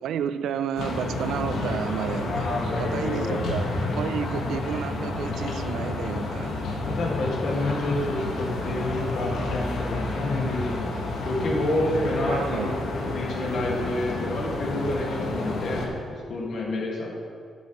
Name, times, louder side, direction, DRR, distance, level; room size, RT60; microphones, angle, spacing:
voice 1, 0.0-6.8 12.2-12.9, right 8 dB, 85° right, 13 dB, 0.3 m, -32 dB
sound 1, 0.7-15.9, left 2 dB, 85° left, 1.5 m, -30 dB
voice 2, 2.3-3.4 6.9-10.9 11.2-17.1, left 2 dB, 55° left, -2 dB, 1.9 m, -29 dB
10.0 x 7.9 x 3.1 m, 2.2 s
wide cardioid pair, 155°, 0 cm